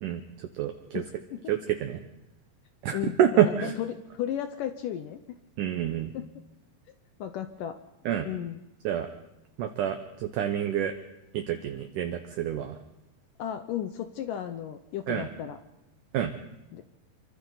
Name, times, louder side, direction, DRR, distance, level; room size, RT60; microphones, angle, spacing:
voice 1, 0.0-1.0 1.5-2.0 2.8-3.8 5.6-6.1 8.1-8.2 8.8-9.1 9.6-10.9 11.3-12.8 15.1-15.3 16.1-16.3, right 10 dB, 70° right, 5 dB, 2.1 m, -27 dB
voice 2, 0.9-1.4 2.9-5.4 6.1-6.4 7.2-7.8 8.2-8.6 13.4-15.6 16.7-16.8, left 10 dB, 80° left, 8 dB, 2.0 m, -34 dB
26.5 x 24.5 x 4.0 m, 0.95 s
omnidirectional pair, 4.8 m